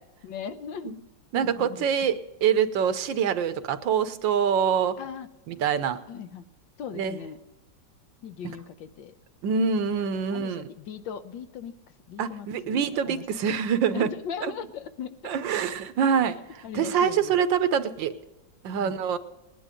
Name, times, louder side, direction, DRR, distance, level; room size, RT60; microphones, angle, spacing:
voice 1, 0.2-0.9 1.3-1.9 5.0-5.3 6.1-6.4 6.8-7.4 8.2-9.2 10.3-11.8 12.1-13.2 13.9-15.3 16.2-16.3 16.6-17.4 18.8-19.0, left 7 dB, 90° left, 11 dB, 1.6 m, -38 dB
voice 2, 1.3-2.1 2.4-4.9 5.5-6.0 6.9-7.2 9.4-10.6 12.2-14.1 15.2-16.4 16.7-18.1 18.6-19.2, right 7 dB, 85° right, 11 dB, 1.6 m, -25 dB
19.5 x 10.0 x 5.1 m, 1.0 s
omnidirectional pair, 2.0 m